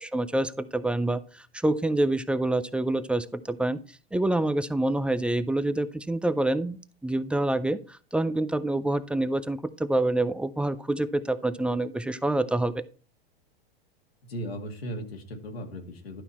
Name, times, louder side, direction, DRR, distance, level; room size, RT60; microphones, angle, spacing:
voice 1, 0.0-3.8 4.1-6.8 7.0-12.7, right 2 dB, 5° right, 14 dB, 0.4 m, -27 dB
voice 2, 14.2-16.2, equal, 80° left, 2 dB, 2.1 m, -37 dB
11.5 x 5.5 x 4.1 m, 0.39 s
hypercardioid pair, 100°, 30 cm